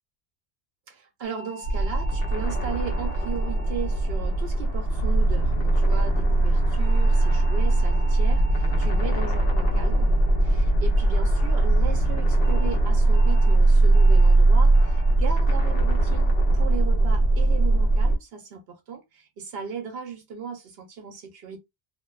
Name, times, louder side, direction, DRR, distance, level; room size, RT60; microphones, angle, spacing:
voice 1, 0.9-10.1 10.4-21.6, right 6 dB, 75° right, 0.8 m, -36 dB
sound 1, 1.2-5.7 6.8-11.3 12.4-12.7 13.1-13.5 13.9-14.3 14.7-15.1 15.5-15.9 16.3-16.7, right 1 dB, 45° right, 0.4 m, -45 dB
sound 2, 1.6-18.2, right 2 dB, 70° left, 0.8 m, -20 dB
2.5 x 2.2 x 2.2 m
omnidirectional pair, 1.1 m